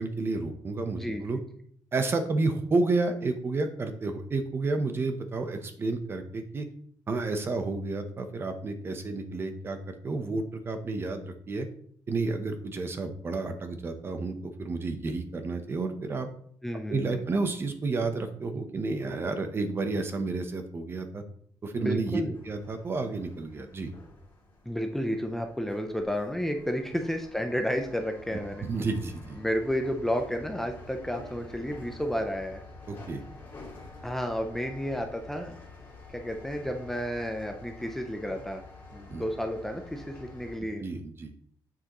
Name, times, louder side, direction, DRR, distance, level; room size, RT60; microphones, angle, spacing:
voice 1, 0.0-1.4 1.9-6.7 7.1-11.7 12.1-16.3 16.9-21.2 21.6-23.9 28.6-29.4 32.9-33.2 39.1-39.2 40.6-41.3, right 3 dB, 30° right, 7 dB, 0.8 m, -31 dB
voice 2, 1.0-1.4 16.6-17.2 21.8-22.3 24.7-28.7 29.4-32.6 34.0-35.6 36.1-38.6 38.9-40.8, equal, 5° left, 4 dB, 0.5 m, -32 dB
sound 1, 22.3-40.6, left 3 dB, 30° left, 2.4 m, -48 dB
7.4 x 6.4 x 3.0 m, 0.62 s
cardioid pair, 155°, 8 cm